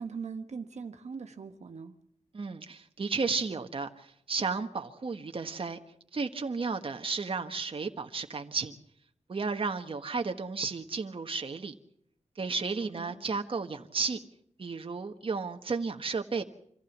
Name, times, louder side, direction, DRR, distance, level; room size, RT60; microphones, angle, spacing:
voice 1, 0.0-1.9 12.9-13.1, right 5 dB, 70° right, 6 dB, 1.4 m, -40 dB
voice 2, 2.3-5.8 6.1-8.7 9.3-11.7 12.4-14.2 14.6-16.4, right 4 dB, 50° right, 5 dB, 1.4 m, -33 dB
26.0 x 15.0 x 7.3 m, 0.70 s
wide cardioid pair, 90°, 12 cm